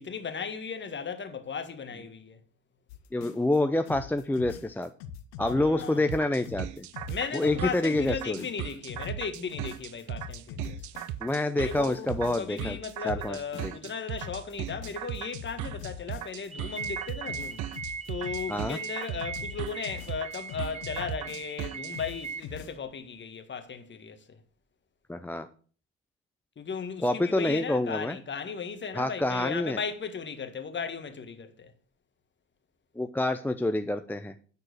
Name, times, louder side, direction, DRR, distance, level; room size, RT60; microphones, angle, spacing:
voice 1, 0.0-2.4 5.4-6.0 7.1-10.9 11.6-17.6 18.1-24.4 26.6-31.7, left 6 dB, 30° left, 1.6 m, -36 dB
sound 1, 2.9-3.6 3.9-6.2 6.4-11.3 11.6-13.9 14.2-16.5 16.8-21.7 21.9-22.8, left 8 dB, 70° left, 1.1 m, -43 dB
voice 2, 3.1-4.9 5.4-6.9 7.3-8.5 11.2-12.8 13.0-13.7 18.5-18.8 25.1-25.5 27.0-28.2 28.9-29.8 33.0-34.3, left 1 dB, 5° left, 0.6 m, -27 dB
sound 2, 6.1-21.9, right 13 dB, 55° right, 0.6 m, -37 dB
sound 3, 16.5-22.4, right 5 dB, 20° right, 0.9 m, -39 dB
9.7 x 4.6 x 6.5 m
hypercardioid pair, 65°, 36 cm